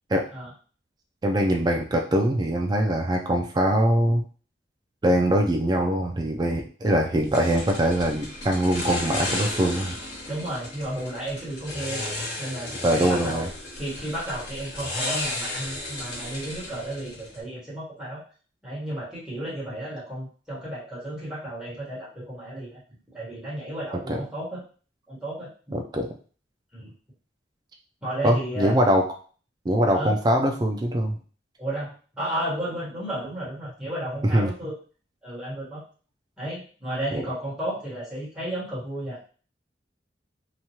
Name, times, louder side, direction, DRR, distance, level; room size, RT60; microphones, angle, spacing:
voice 1, 1.2-4.2 5.0-10.0 12.8-13.5 24.1-24.2 25.7-26.1 28.2-29.0 29.7-31.2 34.3-34.5 37.1-37.2, right 1 dB, 25° right, 1 dB, 0.3 m, -22 dB
sound 1, 7.3-17.4, left 1 dB, 70° left, 1.0 m, -34 dB
voice 2, 10.2-13.4 13.8-18.2 18.6-22.8 23.1-24.6 25.1-25.5 26.7-26.9 28.0-28.8 29.9-30.1 31.6-34.7 35.2-35.8 36.4-39.2, right 1 dB, 5° right, -9 dB, 1.3 m, -33 dB
2.9 x 2.3 x 2.8 m, 0.40 s
head